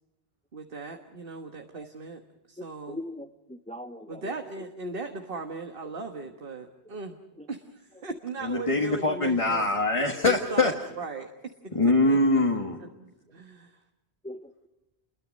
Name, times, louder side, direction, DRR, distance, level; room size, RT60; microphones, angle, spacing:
voice 1, 0.5-2.2 2.5-3.0 4.1-7.2 7.5-9.7 10.2-11.3 12.0-12.2 12.8-13.8, right 3 dB, 60° right, 4 dB, 1.6 m, -38 dB
voice 2, 2.6-4.3 14.2-14.7, left 1 dB, 5° left, 8 dB, 0.8 m, -41 dB
voice 3, 8.4-10.7 11.7-12.8, left 2 dB, 30° left, 1 dB, 1.8 m, -23 dB
29.0 x 22.5 x 5.3 m, 1.0 s
omnidirectional pair, 1.1 m